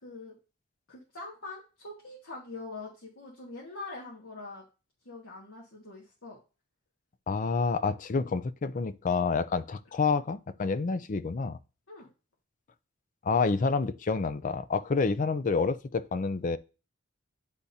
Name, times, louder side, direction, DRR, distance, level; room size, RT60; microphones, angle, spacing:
voice 1, 0.0-0.4 0.9-4.6 5.0-6.4 11.9-12.1, left 3 dB, 65° left, 1.6 m, -43 dB
voice 2, 7.3-11.6 13.2-16.6, left 4 dB, 40° left, 0.4 m, -28 dB
9.9 x 3.5 x 2.7 m
head